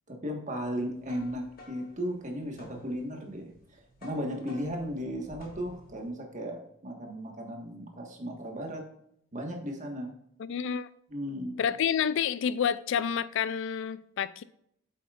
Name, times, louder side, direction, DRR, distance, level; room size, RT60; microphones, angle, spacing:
voice 1, 0.1-8.8 9.3-10.1 11.1-11.6, equal, 40° right, 1.5 m, -36 dB
sound 1, 0.7-6.1, left 1 dB, 45° left, 1.8 m, -53 dB
voice 2, 10.4-10.9 11.6-14.4, left 7 dB, 65° left, 0.3 m, -29 dB
8.3 x 7.7 x 2.5 m
head